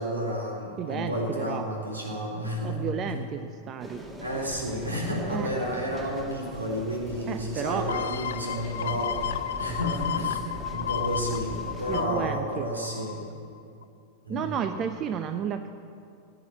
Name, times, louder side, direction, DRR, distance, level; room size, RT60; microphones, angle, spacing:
voice 1, 0.0-2.8 3.0-3.2 4.2-10.4 10.7-13.3 14.2-14.7, equal, 80° right, -1 dB, 3.9 m, -31 dB
voice 2, 0.8-1.7 2.6-4.0 5.3-5.5 7.3-7.9 11.9-12.7 14.3-15.7, right 8 dB, 30° right, 9 dB, 0.7 m, -32 dB
sound 1, 3.8-12.1, right 1 dB, 10° right, 1.9 m, -41 dB
sound 2, 7.9-13.4 13.8-13.9, left 10 dB, 60° left, 0.6 m, -33 dB
18.0 x 8.0 x 9.0 m, 2.5 s
figure-of-eight pair, 90°, 0 cm